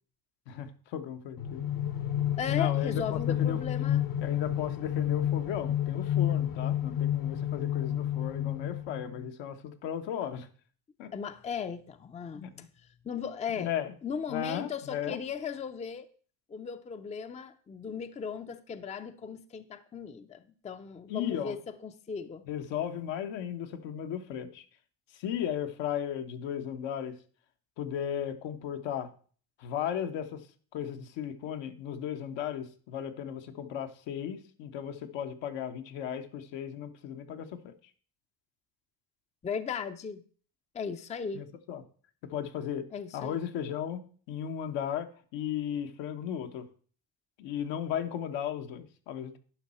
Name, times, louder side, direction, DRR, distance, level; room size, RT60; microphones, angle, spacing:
voice 1, 0.5-1.6 2.5-3.6 4.2-10.5 11.0-11.1 12.3-12.7 13.5-13.9 14.3-15.2 21.1-21.6 22.5-24.7 25.1-27.2 27.8-29.1 29.6-30.5 30.7-37.7 41.3-41.8 42.3-42.9 43.1-44.0 44.3-46.7 47.4-49.4, left 9 dB, 75° left, 1.1 m, -35 dB
sound 1, 1.4-9.3, left 11 dB, 50° left, 0.9 m, -30 dB
voice 2, 2.4-4.0 11.1-12.4 13.0-13.7 14.0-16.1 16.5-22.5 39.4-40.2 40.7-41.4 42.9-43.4, left 6 dB, 15° left, 0.5 m, -37 dB
10.5 x 5.5 x 4.2 m
supercardioid pair, 90°, 45 cm